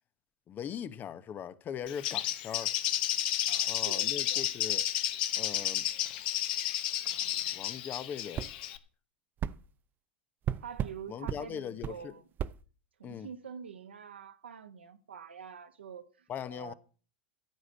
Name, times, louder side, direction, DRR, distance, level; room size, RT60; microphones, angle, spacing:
voice 1, 0.5-2.7 3.7-4.9 5.4-5.9 7.5-8.5 11.1-12.1 13.0-13.3 16.3-16.7, left 8 dB, 30° left, 0.9 m, -40 dB
Bird, 1.9-8.8, left 12 dB, 60° left, 1.3 m, -32 dB
voice 2, 3.5-4.5 10.6-12.2 13.0-16.7, right 7 dB, 80° right, 1.6 m, -46 dB
sound 1, 8.3-8.5 9.4-9.6 10.4-11.0 11.3-11.4 11.8-12.0 12.4-12.6, right 10 dB, 30° right, 0.6 m, -33 dB
14.5 x 5.1 x 8.5 m
hypercardioid pair, 90°, 6 cm